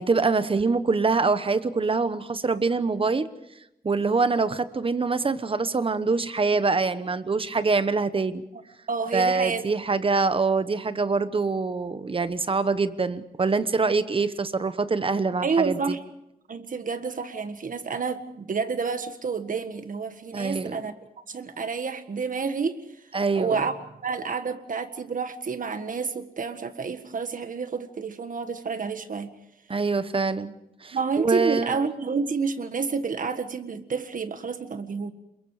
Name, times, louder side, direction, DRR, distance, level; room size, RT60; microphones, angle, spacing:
voice 1, 0.0-3.3 3.8-8.4 9.1-15.8 20.3-20.8 23.1-23.6 29.7-30.5 30.8-31.7, right 4 dB, 35° right, 12 dB, 1.1 m, -24 dB
voice 2, 8.9-9.7 15.4-16.0 16.5-20.9 21.3-22.8 23.4-23.7 24.0-29.3 30.9-35.1, right 5 dB, 55° right, 9 dB, 1.6 m, -29 dB
28.0 x 22.0 x 5.0 m, 0.85 s
wide cardioid pair, 140°, 16 cm